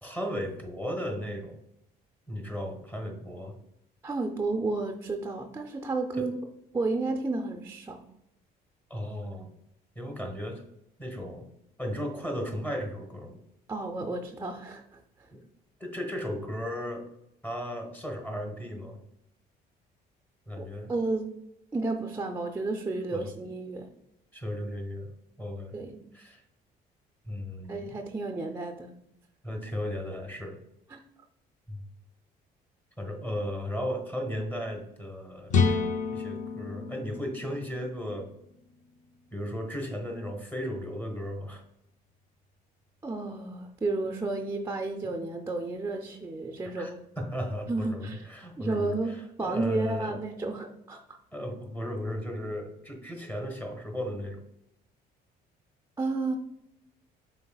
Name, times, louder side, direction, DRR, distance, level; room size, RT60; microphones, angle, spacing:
voice 1, 0.0-1.6 2.3-3.6 6.1-6.3 8.9-9.5 9.9-10.6 11.0-11.5 11.8-13.4 15.8-17.0 17.4-19.0 20.5-21.0 23.1-23.3 24.3-25.1 25.4-25.8 26.1-26.4 27.2-28.0 29.4-30.6 31.7-31.8 33.0-35.8 36.1-38.3 39.3-41.6 46.8-50.1 51.3-54.4, equal, 10° left, 2 dB, 1.1 m, -35 dB
voice 2, 4.0-6.4 6.7-8.0 13.7-15.3 20.6-21.3 21.7-23.9 25.7-26.0 27.7-28.9 30.9-31.0 43.0-47.0 47.7-48.3 48.6-51.2 56.0-56.4, right 3 dB, 15° right, 4 dB, 0.4 m, -32 dB
sound 1, 35.5-39.3, left 4 dB, 45° left, 0.5 m, -30 dB
5.3 x 4.1 x 2.3 m, 0.81 s
cardioid pair, 110°, 17 cm